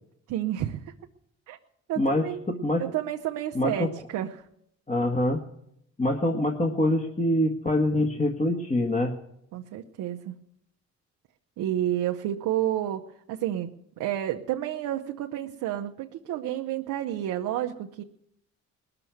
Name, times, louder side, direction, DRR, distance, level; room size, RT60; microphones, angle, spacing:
voice 1, 0.3-0.9 1.5-1.6 1.9-2.4 2.8-4.4 9.5-10.3 11.6-18.0, right 12 dB, 90° right, 3 dB, 0.9 m, -30 dB
voice 2, 2.0-2.8 3.6-3.9 4.9-5.4 6.0-9.1, left 1 dB, 25° left, 1 dB, 1.6 m, -25 dB
19.5 x 6.9 x 9.3 m, 0.74 s
cardioid pair, 90°, 30 cm